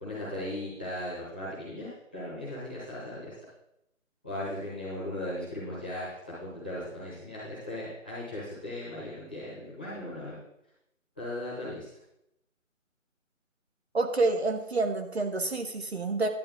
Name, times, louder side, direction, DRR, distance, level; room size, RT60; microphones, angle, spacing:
voice 1, 0.0-3.3 4.2-6.0 6.4-10.3 11.2-11.9, left 1 dB, 5° left, -11 dB, 1.0 m, -37 dB
voice 2, 13.9-16.3, right 3 dB, 50° right, 6 dB, 1.0 m, -28 dB
10.5 x 8.3 x 3.7 m, 0.83 s
figure-of-eight pair, 170°, 40 cm